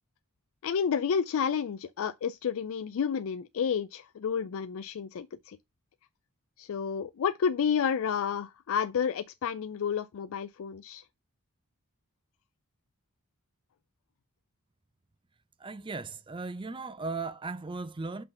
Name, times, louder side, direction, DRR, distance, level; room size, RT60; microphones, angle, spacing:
voice 1, 0.6-5.6 6.6-11.0, left 7 dB, 65° left, 0.4 m, -30 dB
voice 2, 15.6-18.2, right 3 dB, 20° right, 0.5 m, -37 dB
5.6 x 3.8 x 5.5 m
head